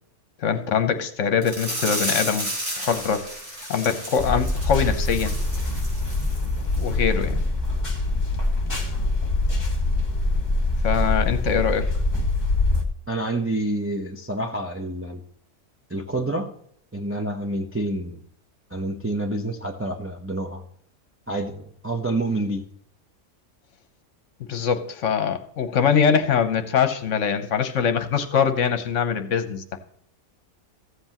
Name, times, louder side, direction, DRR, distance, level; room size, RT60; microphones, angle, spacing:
voice 1, 0.4-2.5 2.8-3.3 3.7-5.3 6.8-7.4 10.8-11.9 24.5-29.8, left 7 dB, 60° left, 9 dB, 1.2 m, -23 dB
sound 1, 1.4-6.4 6.7-6.9 7.3-7.4, right 1 dB, 50° right, 4.2 m, -32 dB
sound 2, 4.2-12.8, left 2 dB, 30° left, 1.6 m, -24 dB
voice 2, 13.1-15.2 15.9-16.5 16.9-18.2 18.7-20.6 21.3-22.6, right 2 dB, 15° right, 2 dB, 0.6 m, -28 dB
14.5 x 7.8 x 3.0 m, 0.67 s
omnidirectional pair, 1.5 m